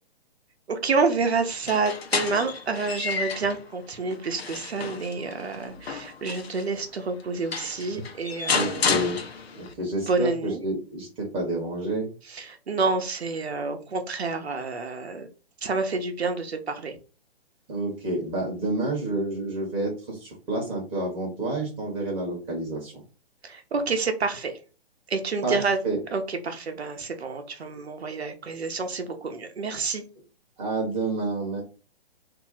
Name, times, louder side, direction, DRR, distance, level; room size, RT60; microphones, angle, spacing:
voice 1, 0.7-9.0 10.0-10.6 12.3-15.3 15.6-16.9 23.4-24.6 25.1-25.8 26.1-30.0, right 4 dB, 90° right, 6 dB, 0.7 m, -28 dB
sound 1, 1.5-3.6 4.1-6.7 7.2-7.3 7.5-9.7, left 5 dB, 75° left, 0.8 m, -30 dB
voice 2, 8.5-9.2 9.5-12.1 17.7-23.0 25.4-26.0 30.6-31.6, right 2 dB, 20° right, -1 dB, 0.8 m, -29 dB
2.6 x 2.0 x 3.8 m, 0.34 s
hypercardioid pair, 135°, 31 cm